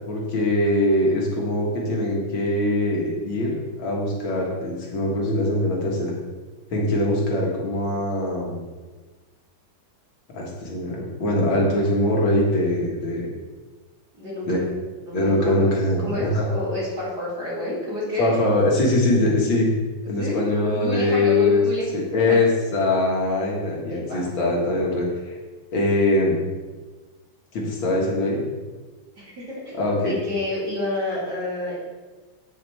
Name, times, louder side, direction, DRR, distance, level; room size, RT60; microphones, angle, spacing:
voice 1, 0.1-6.1 6.7-8.6 10.3-13.3 14.5-14.6 15.1-16.5 18.2-19.7 20.1-21.6 21.9-25.4 25.7-26.4 27.5-28.4 29.7-30.2, left 1 dB, 90° left, -2 dB, 2.5 m, -22 dB
voice 2, 14.2-14.7 15.1-15.7 16.0-18.3 20.2-21.9 22.2-22.4 23.9-24.2 29.2-31.8, left 1 dB, 55° right, -6 dB, 3.3 m, -29 dB
8.1 x 7.6 x 3.4 m, 1.3 s
omnidirectional pair, 2.1 m